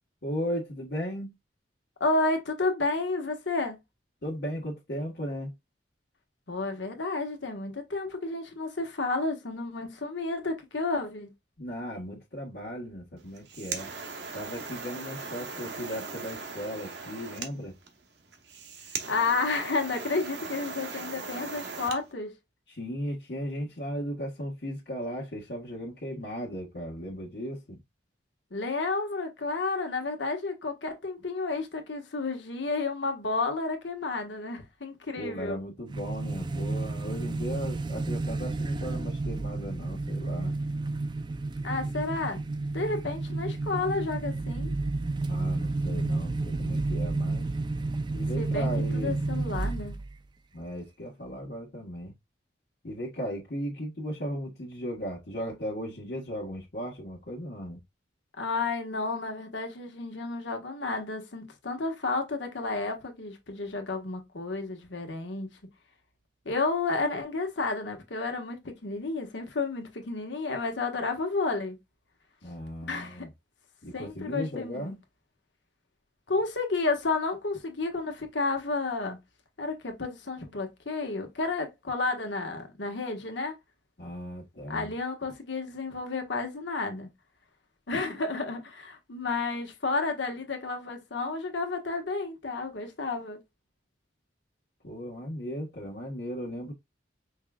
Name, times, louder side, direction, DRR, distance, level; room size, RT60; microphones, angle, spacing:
voice 1, 0.2-1.3 4.2-5.5 11.6-13.9 14.3-17.7 22.7-27.8 35.2-40.5 45.3-47.5 48.1-49.2 50.5-52.1 52.8-57.8 72.4-73.3 73.8-74.9 84.0-84.9 94.8-96.7, equal, 60° left, 1.3 m, -36 dB
voice 2, 2.0-3.8 6.5-11.3 19.1-22.3 28.5-35.6 41.6-42.4 42.7-44.7 48.4-48.7 49.0-50.0 58.4-65.5 66.4-71.8 72.8-73.3 73.9-74.9 76.3-79.2 79.6-83.5 84.7-87.1 87.9-93.4, left 3 dB, 80° left, 1.3 m, -31 dB
sound 1, 13.2-22.0, right 4 dB, 65° right, 1.0 m, -39 dB
sound 2, 35.9-50.1, right 2 dB, 25° right, 0.4 m, -31 dB
5.5 x 3.5 x 2.3 m
head